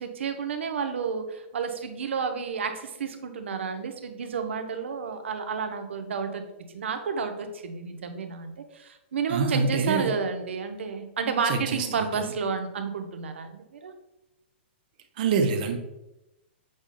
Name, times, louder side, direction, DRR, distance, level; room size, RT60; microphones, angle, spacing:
voice 1, 0.0-6.5 6.7-13.9, right 6 dB, 85° right, 7 dB, 0.6 m, -31 dB
voice 2, 9.3-10.1 11.4-12.3 15.2-15.8, right 4 dB, 45° right, 4 dB, 0.5 m, -26 dB
6.2 x 2.1 x 3.6 m, 0.94 s
hypercardioid pair, 165°, 6 cm